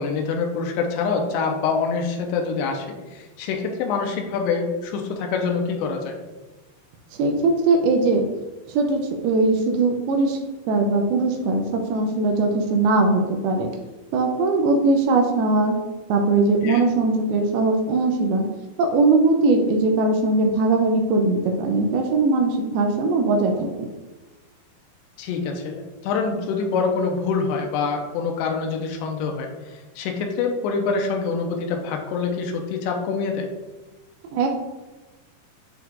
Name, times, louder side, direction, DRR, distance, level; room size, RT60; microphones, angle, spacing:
voice 1, 0.0-6.2 16.6-16.8 25.2-33.5, left 5 dB, 90° left, 2 dB, 2.9 m, -25 dB
voice 2, 7.2-8.2 8.7-10.4 10.7-13.7 14.1-15.8 16.1-18.5 18.8-23.9 34.3-34.5, right 3 dB, 80° right, 3 dB, 2.2 m, -20 dB
8.2 x 4.6 x 2.5 m, 1.2 s
omnidirectional pair, 4.9 m